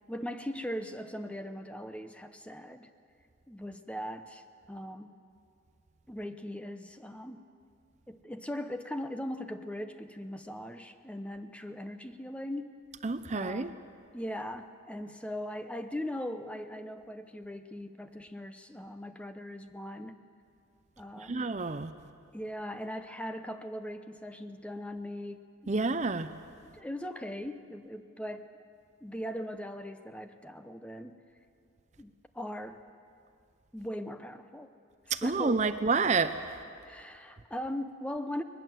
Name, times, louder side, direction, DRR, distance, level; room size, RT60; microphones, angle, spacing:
voice 1, 0.1-2.9 3.5-5.2 6.1-7.5 8.1-12.7 13.3-13.8 14.1-20.2 21.0-21.5 22.3-25.7 26.7-28.5 29.0-31.2 32.0-32.8 33.7-34.7 35.2-35.7 36.8-38.4, equal, 5° left, 8 dB, 0.7 m, -39 dB
voice 2, 13.0-13.7 21.2-21.9 25.7-26.3 35.1-36.3, right 4 dB, 35° right, 11 dB, 0.5 m, -29 dB
20.5 x 20.0 x 7.7 m, 2.4 s
head